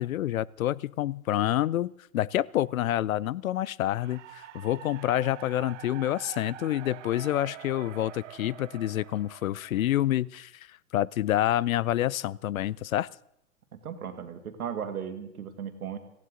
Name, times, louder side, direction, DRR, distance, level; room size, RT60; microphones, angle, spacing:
voice 1, 0.0-13.1, left 13 dB, 70° left, 24 dB, 0.6 m, -28 dB
sound 1, 4.0-10.1, right 13 dB, 55° right, 0.9 m, -46 dB
voice 2, 13.7-16.0, right 8 dB, 80° right, 7 dB, 2.1 m, -36 dB
17.5 x 15.0 x 3.9 m, 0.75 s
hypercardioid pair, 120°, 43 cm